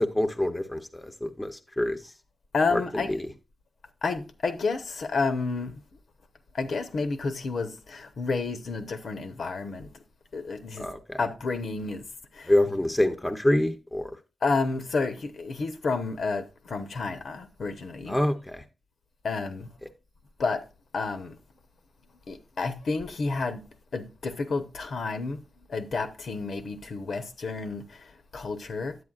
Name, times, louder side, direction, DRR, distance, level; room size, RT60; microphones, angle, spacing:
voice 1, 0.0-2.1 2.7-2.8 3.1-3.2 10.8-11.2 12.4-14.1 18.1-18.6, left 1 dB, 10° left, 0.6 m, -26 dB
voice 2, 2.5-3.1 4.0-5.8 6.5-9.9 10.3-10.9 11.2-12.1 12.3-12.5 14.4-18.2 19.2-19.7 20.4-20.6 20.9-21.4 22.3-25.4 25.7-29.0, left 4 dB, 65° left, 0.8 m, -30 dB
9.5 x 8.1 x 2.3 m
wide cardioid pair, 115°, 0 cm